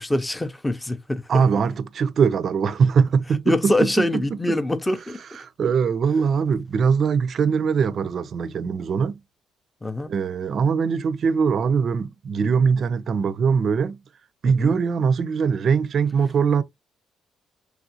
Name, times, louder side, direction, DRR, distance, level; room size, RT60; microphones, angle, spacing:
voice 1, 0.0-1.4 3.5-5.2 9.8-10.1 14.4-14.7, left 1 dB, 15° left, 0.5 m, -24 dB
voice 2, 1.3-4.6 5.3-9.2 10.1-14.0 14.4-16.6, right 6 dB, 55° right, 0.4 m, -22 dB
3.3 x 2.4 x 2.7 m
cardioid pair, 90°, 0 cm